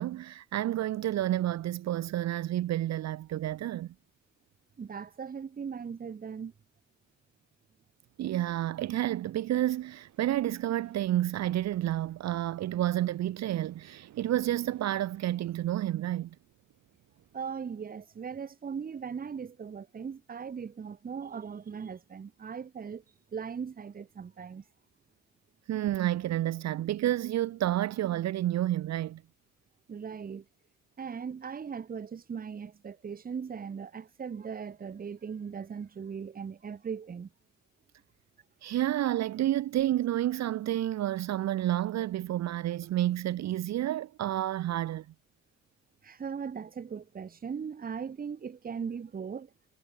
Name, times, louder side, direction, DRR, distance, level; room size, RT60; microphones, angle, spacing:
voice 1, 0.0-3.9 8.2-16.3 25.7-29.2 38.6-45.1, right 13 dB, 60° right, 0.7 m, -30 dB
voice 2, 4.8-6.5 17.3-23.0 23.3-24.6 29.9-30.5 31.0-37.3 46.0-49.5, right 6 dB, 30° right, 0.9 m, -39 dB
sound 1, 8.0-17.8, right 12 dB, 75° right, 4.6 m, -59 dB
cardioid pair, 90°, 30 cm